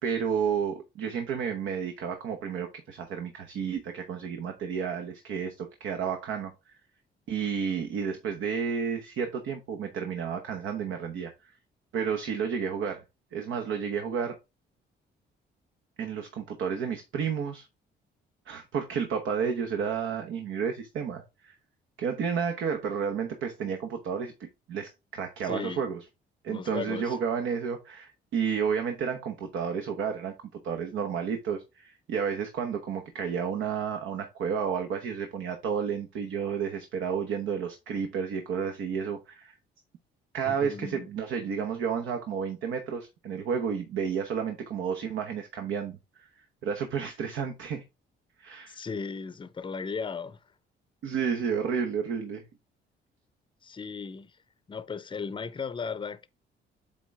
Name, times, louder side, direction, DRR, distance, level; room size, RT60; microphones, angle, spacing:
voice 1, 0.0-6.8 7.3-11.5 11.9-13.0 13.3-14.4 16.0-17.7 18.5-21.5 22.0-26.0 26.4-30.3 30.6-39.6 40.3-47.8 48.4-48.8 51.0-52.4, right 7 dB, 80° right, 1.1 m, -31 dB
voice 2, 25.4-25.8 26.5-27.2 40.4-41.1 48.7-50.4 53.6-54.3 54.7-56.3, left 5 dB, 25° left, 0.6 m, -36 dB
8.3 x 3.7 x 3.4 m
cardioid pair, 90°, 20 cm